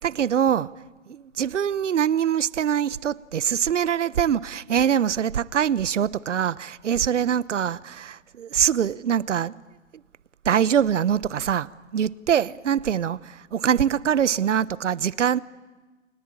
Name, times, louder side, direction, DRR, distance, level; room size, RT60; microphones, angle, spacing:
voice 1, 0.0-0.7 1.1-9.5 10.4-11.7 11.9-15.4, right 8 dB, 65° right, 1.0 m, -23 dB
30.0 x 21.0 x 8.8 m
hypercardioid pair, 155°, 39 cm